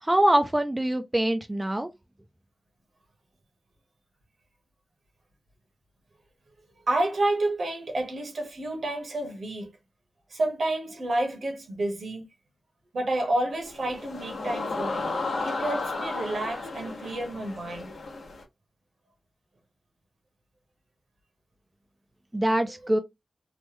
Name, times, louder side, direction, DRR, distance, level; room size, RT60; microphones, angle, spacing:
voice 1, 0.0-1.9 22.3-23.0, right 1 dB, 15° right, 0.3 m, -24 dB
voice 2, 6.9-9.7 10.3-12.2 12.9-15.1 15.4-17.9, right 1 dB, 70° right, 1.0 m, -29 dB
sound 1, 13.6-18.4, left 3 dB, 80° left, 0.7 m, -33 dB
3.0 x 2.1 x 3.2 m
wide cardioid pair, 100°, 0 cm